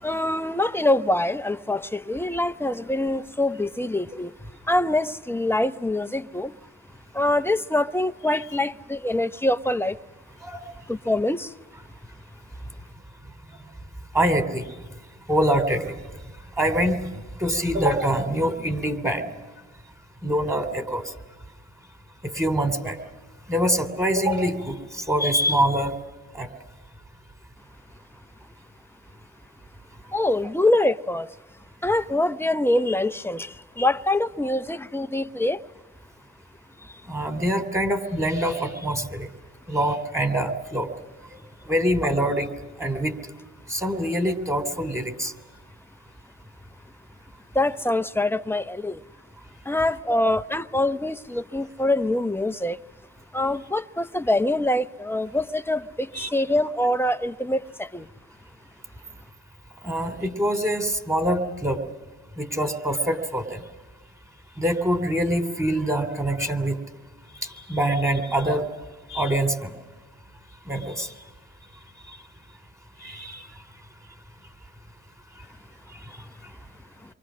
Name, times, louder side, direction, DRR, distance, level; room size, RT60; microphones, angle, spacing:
voice 1, 0.0-4.3 4.7-6.5 7.1-10.0 10.9-11.5 30.1-31.3 31.8-35.6 36.8-37.0 47.5-49.0 49.6-52.8 53.3-58.1, left 1 dB, 10° left, 0.8 m, -24 dB
voice 2, 14.1-14.6 15.3-15.9 16.6-17.0 17.4-19.3 20.2-21.0 22.2-23.0 23.5-24.8 25.1-25.9 26.3-26.5 37.1-39.3 39.7-40.9 41.7-42.5 42.8-43.1 43.7-45.3 50.1-50.2 56.1-56.3 59.8-61.8 62.4-63.6 64.6-66.8 67.7-68.7 69.1-69.7 70.7-71.1 73.0-73.4, right 1 dB, 10° right, 3.1 m, -24 dB
28.5 x 24.0 x 6.3 m
cardioid pair, 90°, 30 cm